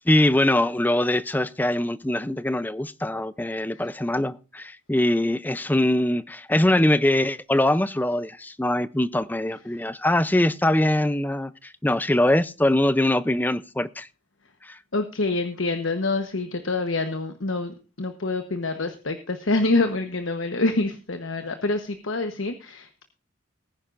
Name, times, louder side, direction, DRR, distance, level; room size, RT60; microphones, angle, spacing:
voice 1, 0.1-14.1 14.6-14.8, left 1 dB, 10° left, 0.5 m, -23 dB
voice 2, 14.9-23.0, left 2 dB, 75° left, 1.2 m, -26 dB
19.5 x 10.0 x 2.6 m
head